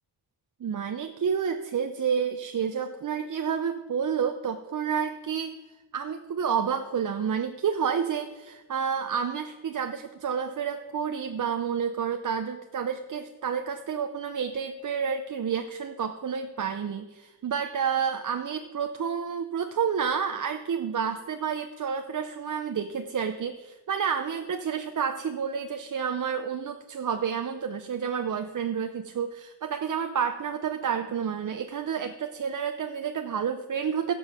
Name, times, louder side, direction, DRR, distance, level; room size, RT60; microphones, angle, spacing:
voice 1, 0.6-5.6 5.9-34.1, right 7 dB, 45° right, 7 dB, 0.7 m, -30 dB
16.0 x 5.5 x 5.6 m, 1.1 s
cardioid pair, 70°, 43 cm